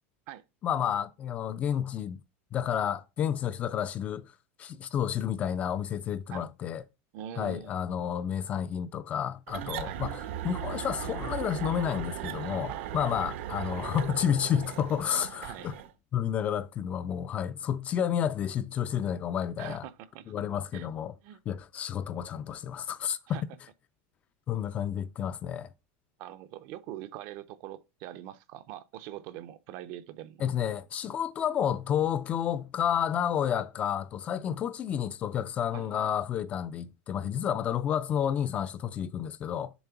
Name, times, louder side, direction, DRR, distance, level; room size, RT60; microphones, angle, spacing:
voice 1, 0.6-2.2 2.5-4.3 4.6-6.8 7.4-15.8 16.1-19.8 20.3-21.1 21.5-23.5 24.5-25.7 30.4-39.7, left 9 dB, 20° left, 0.3 m, -30 dB
voice 2, 7.1-7.7 9.8-10.0 12.7-13.3 15.4-15.7 19.6-20.3 20.7-20.9 21.2-21.4 23.3-23.4 26.2-30.4 35.7-36.2, right 12 dB, 40° right, 0.5 m, -43 dB
sound 1, 9.5-15.9, right 10 dB, 75° right, 1.0 m, -37 dB
7.1 x 3.5 x 5.7 m
supercardioid pair, 175°, 7 cm